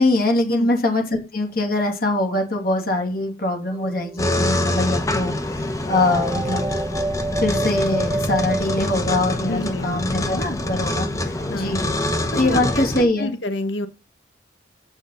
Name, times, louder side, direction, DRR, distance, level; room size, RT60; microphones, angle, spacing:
voice 1, 0.0-6.6 7.4-11.9 12.4-13.3, left 2 dB, 50° left, 2.6 m, -23 dB
sound 1, 3.7-4.4 5.9-9.7, right 2 dB, 15° right, 0.4 m, -28 dB
sound 2, 4.2-13.0, left 1 dB, 15° left, 0.9 m, -25 dB
voice 2, 9.4-10.6 11.5-11.8 12.3-13.9, left 1 dB, 75° left, 1.2 m, -29 dB
8.3 x 6.3 x 3.9 m
head